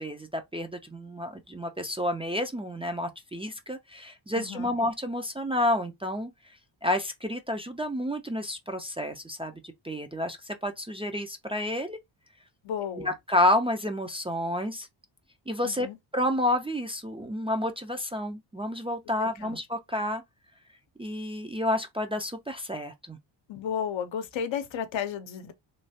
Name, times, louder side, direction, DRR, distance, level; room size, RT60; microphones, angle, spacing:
voice 1, 0.0-6.3 6.8-12.0 13.0-14.9 15.5-15.9 16.1-20.2 21.0-23.2, left 1 dB, 15° right, 0.4 m, -30 dB
voice 2, 4.3-4.7 12.6-13.1 15.6-16.0 19.2-19.6 23.5-25.5, left 8 dB, 70° left, 0.7 m, -33 dB
3.2 x 2.3 x 2.7 m
cardioid pair, 85°, 48 cm